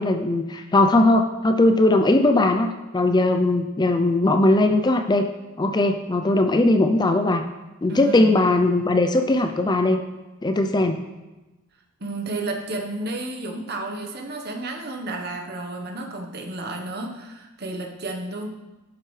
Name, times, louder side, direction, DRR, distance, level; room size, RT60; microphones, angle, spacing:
voice 1, 0.0-2.7 2.9-5.3 5.6-7.4 7.8-10.0 10.4-11.0, left 2 dB, 20° left, 6 dB, 0.4 m, -19 dB
voice 2, 7.9-8.4 12.0-18.5, right 2 dB, 45° right, 2 dB, 1.1 m, -32 dB
11.5 x 7.5 x 3.2 m, 1.1 s
head